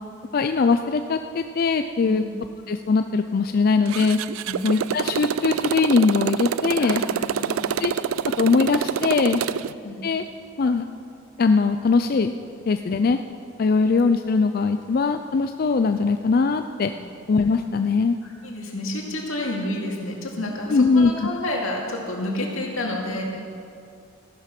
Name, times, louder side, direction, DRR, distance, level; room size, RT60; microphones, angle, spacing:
voice 1, 0.3-2.2 2.7-4.2 4.6-7.0 7.8-7.9 8.4-9.4 10.0-10.2 10.6-10.8 11.4-12.3 12.7-13.2 13.6-16.9 17.3-18.2 20.7-21.1, left 4 dB, 45° left, 8 dB, 0.4 m, -21 dB
Motorcycle, 3.9-9.7, right 7 dB, 90° right, 0.4 m, -26 dB
voice 2, 6.8-7.7 9.8-10.0 17.0-17.1 18.2-23.2, left 1 dB, 85° left, -1 dB, 2.4 m, -30 dB
14.5 x 10.5 x 5.9 m, 2.4 s
head